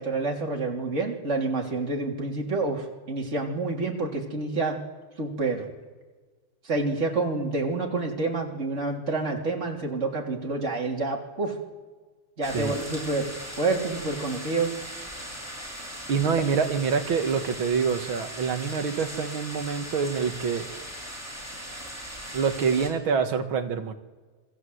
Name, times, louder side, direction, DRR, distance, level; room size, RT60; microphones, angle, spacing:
voice 1, 0.0-4.8 5.2-5.7 6.6-11.6 12.4-13.3 13.6-14.7, right 3 dB, 30° right, 0 dB, 3.5 m, -28 dB
sound 1, 12.4-22.9, equal, 5° right, 5.8 m, -39 dB
voice 2, 16.1-20.7 22.3-23.9, right 6 dB, 70° right, 7 dB, 2.5 m, -26 dB
27.0 x 22.0 x 8.0 m, 1.4 s
omnidirectional pair, 2.4 m